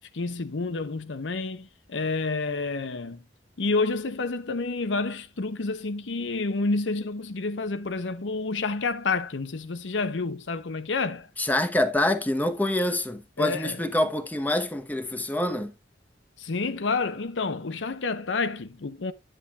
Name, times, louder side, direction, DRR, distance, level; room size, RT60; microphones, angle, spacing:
voice 1, 0.1-3.2 3.6-11.3 13.4-13.8 16.4-19.1, left 3 dB, 80° left, 0.7 m, -29 dB
voice 2, 11.4-15.7, left 1 dB, 10° left, 0.9 m, -26 dB
9.9 x 7.5 x 2.3 m
head